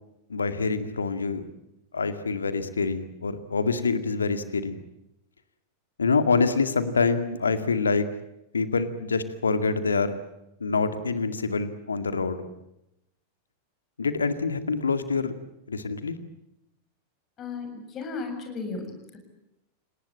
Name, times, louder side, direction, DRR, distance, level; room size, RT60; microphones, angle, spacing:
voice 1, 0.3-1.5 1.9-4.8 6.0-8.1 8.5-10.2 10.6-12.4 14.0-15.3 15.7-16.2, left 4 dB, 75° left, 10 dB, 2.0 m, -26 dB
voice 2, 17.4-19.2, left 4 dB, 30° left, 6 dB, 7.5 m, -35 dB
29.5 x 19.0 x 8.8 m, 0.84 s
figure-of-eight pair, 90°, 0 cm